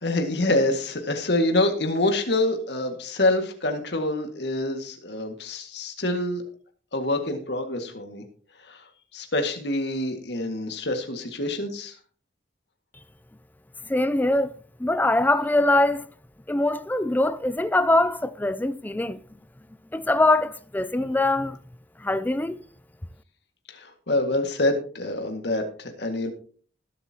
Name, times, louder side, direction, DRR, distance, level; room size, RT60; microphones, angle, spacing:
voice 1, 0.0-6.4 6.9-8.2 8.6-8.8 9.1-12.0 23.7-26.3, left 2 dB, 65° left, 1.9 m, -26 dB
voice 2, 13.9-14.5 14.8-16.1 16.5-19.2 19.9-21.6 22.0-22.6, left 2 dB, 10° left, 0.4 m, -22 dB
20.5 x 8.1 x 2.9 m
head